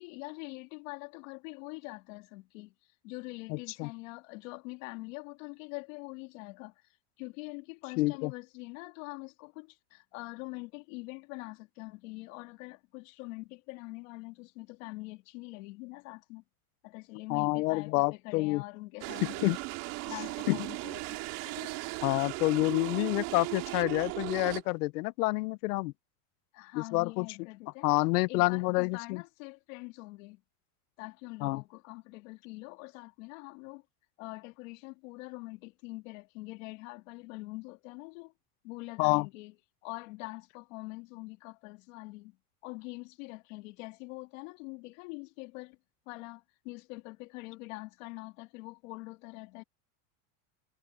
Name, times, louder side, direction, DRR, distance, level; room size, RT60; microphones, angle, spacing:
voice 1, 0.0-6.8 7.2-16.4 16.8-19.5 20.1-21.8 26.5-27.9 28.3-30.4 31.0-33.8 34.2-38.3 38.6-39.5 39.8-45.8 46.1-49.6, left 25 dB, 55° left, 3.0 m, -44 dB
voice 2, 3.5-3.9 8.0-8.3 17.3-18.6 19.4-19.6 20.5-20.6 22.0-25.9 26.8-27.3 27.8-29.2 31.4-31.6 39.0-39.3, left 23 dB, 80° left, 0.6 m, -28 dB
sound 1, 19.0-24.6, right 24 dB, 45° right, 3.2 m, -37 dB
supercardioid pair, 175°, 45 cm